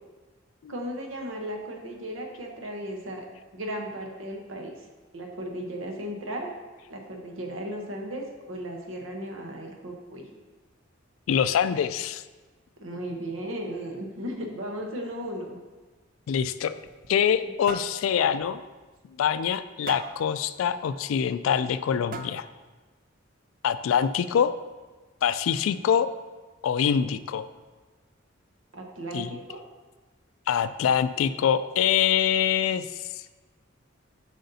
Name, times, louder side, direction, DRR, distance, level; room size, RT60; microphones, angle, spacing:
voice 1, 0.7-3.3 3.5-4.7 5.1-6.5 6.9-10.3 12.8-15.6 17.4-17.5 28.7-29.6, equal, 75° right, 2 dB, 0.9 m, -35 dB
voice 2, 11.3-12.2 16.3-16.7 17.1-18.6 19.2-22.5 23.6-24.5 25.2-26.1 26.6-27.5 29.1-29.3 30.5-32.9 33.1-33.2, left 8 dB, 90° left, 13 dB, 0.3 m, -24 dB
sound 1, 16.6-17.4 17.7-18.0 18.4-18.6 18.9-19.0 19.9-20.2 21.4-21.5 22.1-22.6, right 4 dB, 45° right, 0.4 m, -39 dB
7.7 x 5.1 x 2.7 m, 1.3 s
head